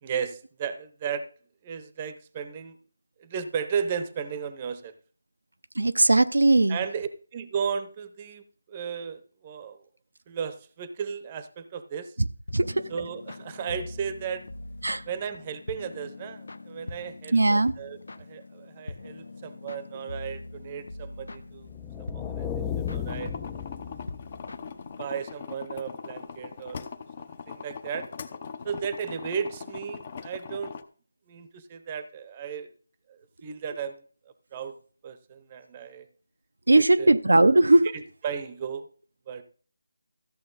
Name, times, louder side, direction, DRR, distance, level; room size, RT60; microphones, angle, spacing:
voice 1, 0.0-1.2 1.6-2.8 3.2-4.9 6.7-8.4 8.7-9.8 10.3-12.1 12.9-14.4 15.1-21.7 22.1-22.6 22.9-23.3 25.0-26.8 27.5-28.1 28.6-30.7 31.3-32.7 33.1-34.0 34.5-34.8 35.0-36.1 36.7-37.1 37.9-38.8 39.3-39.4, right 7 dB, 20° right, 0.8 m, -34 dB
voice 2, 5.8-6.8 12.5-12.9 14.8-15.0 17.3-17.7 36.7-37.9, right 2 dB, 85° right, 0.6 m, -19 dB
sound 1, 12.5-25.3, left 2 dB, 70° left, 0.8 m, -43 dB
sound 2, 21.6-24.6, left 9 dB, 10° left, 0.4 m, -34 dB
sound 3, 23.0-30.8, left 6 dB, 35° left, 0.8 m, -41 dB
14.0 x 7.1 x 4.0 m
figure-of-eight pair, 165°, 0 cm